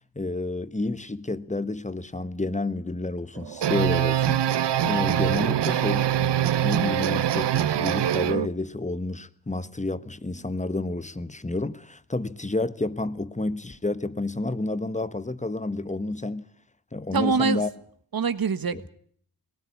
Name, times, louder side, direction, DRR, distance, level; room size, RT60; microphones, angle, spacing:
voice 1, 0.1-16.4 16.9-17.7 18.7-18.8, left 2 dB, 15° left, 1.2 m, -30 dB
sound 1, 3.4-8.5, right 11 dB, 70° right, 0.8 m, -24 dB
voice 2, 17.1-17.6 18.1-18.9, right 5 dB, 55° right, 1.5 m, -24 dB
19.0 x 17.5 x 9.7 m
cardioid pair, 55°, 43 cm